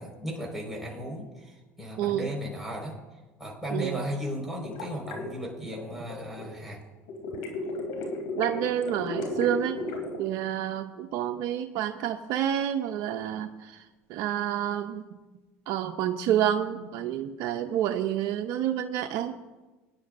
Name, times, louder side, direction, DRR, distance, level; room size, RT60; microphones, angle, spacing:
voice 1, 0.0-2.9 3.4-6.8, equal, 5° right, -2 dB, 4.8 m, -36 dB
voice 2, 2.0-2.3 3.7-4.0 8.4-9.8 10.2-13.8 14.1-15.0 15.7-19.3, right 10 dB, 65° right, 7 dB, 0.6 m, -28 dB
sound 1, 4.6-6.5 7.1-10.2, left 2 dB, 80° left, 3.0 m, -34 dB
21.5 x 10.5 x 2.6 m, 1.2 s
supercardioid pair, 90°, 7 cm